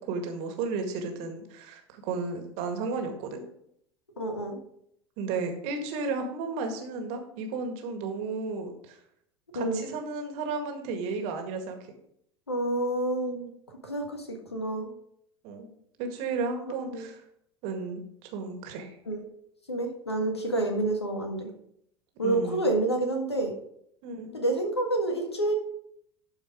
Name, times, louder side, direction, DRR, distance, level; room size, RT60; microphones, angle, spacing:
voice 1, 0.1-3.4 5.2-9.0 9.5-11.8 15.4-15.7 16.0-17.2 17.6-18.9 22.2-22.7 24.0-24.4, right 4 dB, 50° right, 4 dB, 1.9 m, -33 dB
voice 2, 4.2-4.6 9.5-9.8 12.5-13.5 13.8-14.9 16.9-17.0 19.1-19.2 19.7-21.5 22.2-23.5 24.3-25.5, right 2 dB, 85° left, 3 dB, 1.6 m, -28 dB
12.0 x 4.9 x 5.0 m, 0.72 s
figure-of-eight pair, 75°, 13 cm